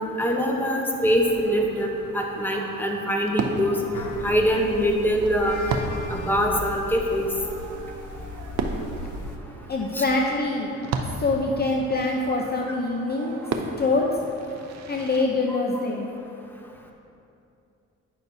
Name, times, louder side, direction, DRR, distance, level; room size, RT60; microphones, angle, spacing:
voice 1, 0.0-1.9 2.1-3.8 4.2-5.6 6.1-7.3 9.9-10.0, equal, 5° left, 1 dB, 0.8 m, -23 dB
Fireworks, 1.0-15.2, right 4 dB, 60° right, 0.6 m, -35 dB
sound 1, 3.9-9.4, left 2 dB, 80° left, 0.6 m, -37 dB
voice 2, 9.7-10.7 11.2-13.4 13.8-14.1 14.9-16.1, left 3 dB, 35° left, 0 dB, 0.6 m, -24 dB
9.5 x 6.0 x 2.7 m, 2.7 s
cardioid pair, 90°, 30 cm